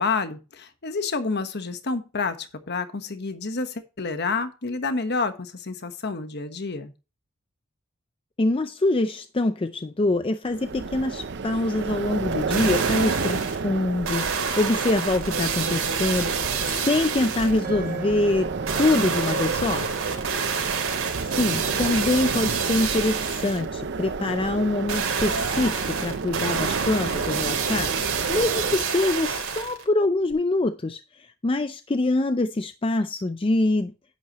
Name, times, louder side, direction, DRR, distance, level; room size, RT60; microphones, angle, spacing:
voice 1, 0.0-6.9, left 4 dB, 50° left, 1.2 m, -29 dB
voice 2, 8.4-19.9 21.4-33.9, left 2 dB, 25° left, 0.5 m, -25 dB
sound 1, 10.4-28.8, right 4 dB, 55° right, 0.6 m, -31 dB
sound 2, 12.3-13.6 14.0-17.6 18.7-23.6 24.9-29.8 30.3-30.4, right 5 dB, 90° right, 3.8 m, -28 dB
sound 3, 17.6-26.0, right 4 dB, 35° right, 1.9 m, -42 dB
10.5 x 9.4 x 3.0 m
head